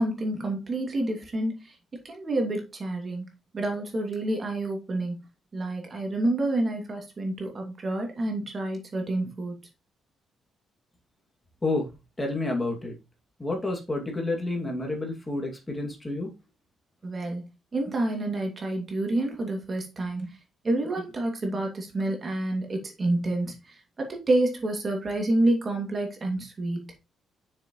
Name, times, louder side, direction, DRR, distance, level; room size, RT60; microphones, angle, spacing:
voice 1, 0.0-1.5 2.1-3.2 3.5-5.2 5.5-9.6 17.0-17.5 17.7-20.3 20.6-23.6 24.0-26.9, right 2 dB, 35° right, 2.5 m, -28 dB
voice 2, 12.2-12.9 13.4-16.3, left 2 dB, 15° left, 2.4 m, -29 dB
6.7 x 6.2 x 3.2 m
cardioid pair, 90°, 0 cm